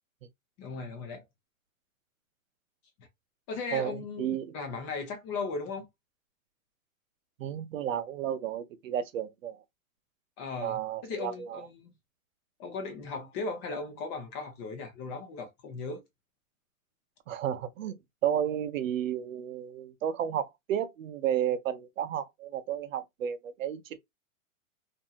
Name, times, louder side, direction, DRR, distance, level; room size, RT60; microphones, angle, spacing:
voice 1, 0.6-1.2 3.5-5.9 10.4-11.9 12.6-16.0, left 4 dB, 25° left, 0.7 m, -37 dB
voice 2, 3.7-4.5 7.4-9.6 10.6-11.6 17.3-18.0 18.2-24.0, right 10 dB, 65° right, 0.6 m, -32 dB
2.7 x 2.6 x 2.3 m
hypercardioid pair, 145°, 42 cm